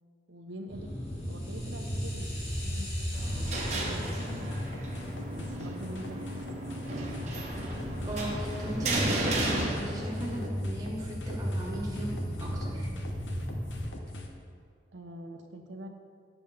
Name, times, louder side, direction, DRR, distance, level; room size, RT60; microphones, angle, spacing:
voice 1, 0.3-0.9 1.3-4.5 5.3-7.0 14.9-15.9, right 1 dB, 75° right, 4 dB, 0.8 m, -45 dB
sound 1, 0.7-13.8, equal, 35° left, 1.7 m, -36 dB
sound 2, 3.1-10.5, right 1 dB, 35° right, 1.0 m, -34 dB
sound 3, 3.7-14.3, left 2 dB, 80° left, 0.8 m, -44 dB
voice 2, 8.0-12.9, equal, 20° right, -5 dB, 1.4 m, -38 dB
8.4 x 7.0 x 3.5 m, 2.2 s
head